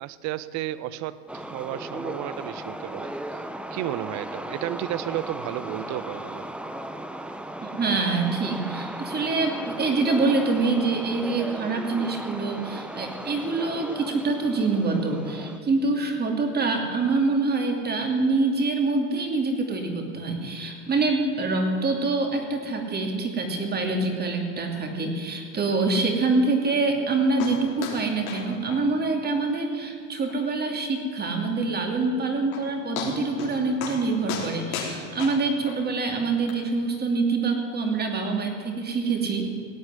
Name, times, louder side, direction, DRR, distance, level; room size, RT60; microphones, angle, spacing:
voice 1, 0.0-3.4 3.7-6.4, right 14 dB, 45° right, 16 dB, 0.8 m, -33 dB
sound 1, 1.3-15.6, right 1 dB, 5° right, 0.6 m, -36 dB
voice 2, 7.6-39.5, right 3 dB, 25° right, 3 dB, 2.6 m, -25 dB
sound 2, 27.4-27.6 27.8-28.0 28.3-28.4 28.7-28.8 29.2-29.3 29.7-29.8 30.3-30.4 32.1-32.2 32.5-32.7 33.0-33.5 33.8-34.0 34.3-35.8 36.5-36.6, left 7 dB, 80° left, 3.6 m, -33 dB
17.5 x 8.8 x 9.3 m, 2.4 s
supercardioid pair, 125°, 41 cm